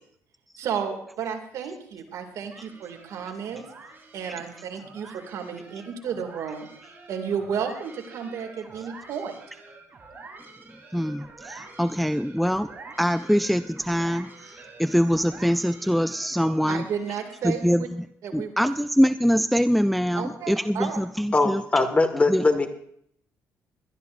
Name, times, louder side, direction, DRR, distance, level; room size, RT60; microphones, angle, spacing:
voice 1, 0.6-3.6 4.1-9.4 16.7-17.9 18.2-18.5 20.1-21.0, right 7 dB, 70° right, 4 dB, 2.5 m, -32 dB
sound 1, 2.5-17.6, right 3 dB, 40° right, 4.0 m, -47 dB
voice 2, 10.9-12.7 13.0-16.8 17.4-18.1 18.3-21.6 22.3-22.4, equal, ahead, 12 dB, 0.4 m, -24 dB
voice 3, 21.3-22.7, left 3 dB, 25° left, 7 dB, 1.8 m, -21 dB
21.0 x 13.0 x 2.6 m, 0.67 s
cardioid pair, 95°, 6 cm